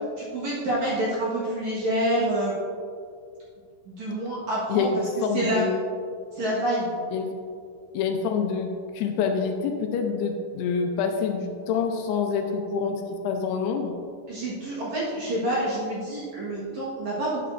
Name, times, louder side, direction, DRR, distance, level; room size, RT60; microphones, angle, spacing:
voice 1, 0.2-2.6 3.9-5.7 6.3-7.0 14.3-17.4, right 1 dB, 60° right, -7 dB, 2.2 m, -27 dB
voice 2, 4.7-5.9 7.1-7.3 7.9-13.9, left 5 dB, 80° left, 4 dB, 2.6 m, -27 dB
11.0 x 8.7 x 2.6 m, 2.2 s
omnidirectional pair, 5.0 m